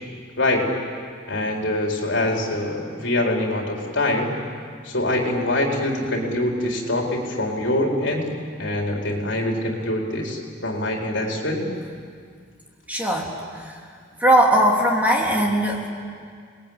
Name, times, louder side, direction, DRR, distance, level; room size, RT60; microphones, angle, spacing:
voice 1, 0.4-0.7 1.3-4.3 4.8-8.3 8.6-11.6, left 1 dB, 65° left, 0 dB, 4.4 m, -24 dB
voice 2, 12.9-13.8 14.2-15.9, right 1 dB, 10° right, -2 dB, 3.2 m, -19 dB
29.5 x 20.5 x 9.0 m, 2.1 s
head